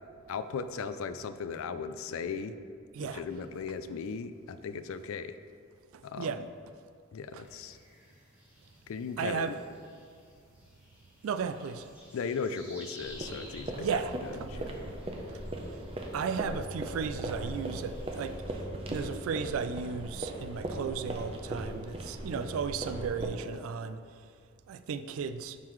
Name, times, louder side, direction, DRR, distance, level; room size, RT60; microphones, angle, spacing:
voice 1, 0.3-2.5 3.0-5.4 6.0-6.3 7.1-7.8 8.9-9.6 12.1-14.0 14.5-14.8, left 5 dB, 70° left, 11 dB, 0.3 m, -37 dB
voice 2, 5.9-6.4 7.3-7.4 9.2-9.6 11.2-11.9 13.8-14.7 15.3-15.4 15.7-15.8 16.1-18.6 18.9-24.0 24.7-25.6, right 6 dB, 75° right, 12 dB, 0.3 m, -35 dB
sound 1, 7.4-18.4, equal, 5° right, 1.4 m, -55 dB
sound 2, 13.0-23.3, right 1 dB, 25° right, 0.6 m, -38 dB
11.0 x 3.8 x 3.1 m, 2.2 s
head